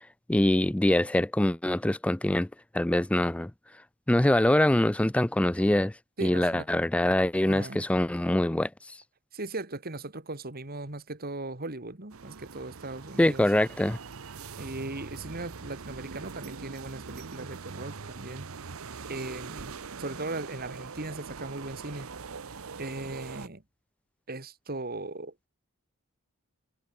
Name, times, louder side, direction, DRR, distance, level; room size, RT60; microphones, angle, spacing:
voice 1, 0.3-2.5 2.7-3.5 4.1-5.9 6.2-9.0 13.2-14.0, left 1 dB, 5° left, 0.3 m, -24 dB
voice 2, 6.2-6.7 7.5-7.8 9.3-13.5 14.6-18.5 19.1-22.1 22.8-23.6 24.3-25.3, right 2 dB, 45° right, 2.4 m, -38 dB
sound 1, 12.1-23.5, right 5 dB, 70° right, 0.8 m, -42 dB
head